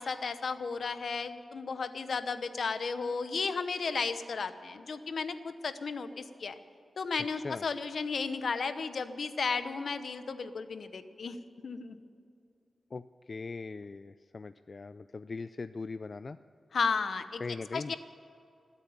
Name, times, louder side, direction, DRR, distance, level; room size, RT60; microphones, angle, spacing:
voice 1, 0.0-6.5 7.0-11.4 11.6-12.0 16.7-17.4 17.7-17.9, left 5 dB, 70° left, 11 dB, 0.9 m, -34 dB
voice 2, 7.3-7.7 12.9-16.4 17.4-17.9, left 4 dB, 45° left, 13 dB, 0.3 m, -40 dB
18.5 x 8.2 x 9.3 m, 2.6 s
wide cardioid pair, 85°, 0 cm